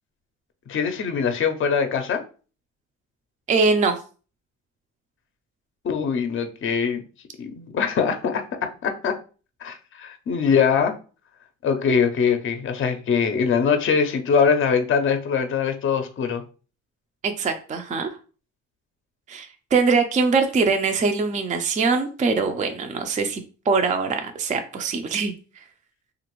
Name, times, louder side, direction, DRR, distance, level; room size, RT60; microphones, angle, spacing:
voice 1, 0.7-2.2 5.8-7.0 7.4-8.5 8.8-9.1 9.6-11.0 11.6-16.4, left 6 dB, 45° left, 0.6 m, -22 dB
voice 2, 3.5-4.0 17.2-18.1 19.3-25.6, right 4 dB, 25° right, 0.4 m, -23 dB
3.0 x 2.5 x 2.9 m
cardioid pair, 90°, 30 cm